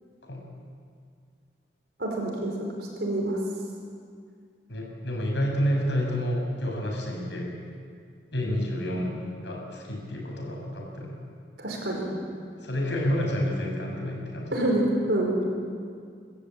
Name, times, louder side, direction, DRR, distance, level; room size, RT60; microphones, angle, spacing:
voice 1, 2.0-2.5 3.0-3.4 11.6-12.0 14.5-15.3, right 1 dB, 70° right, -1 dB, 5.0 m, -26 dB
voice 2, 4.7-7.5 8.3-9.2 9.4-11.2 12.6-14.6, equal, 85° left, 0 dB, 6.0 m, -29 dB
26.0 x 14.0 x 8.6 m, 2.2 s
head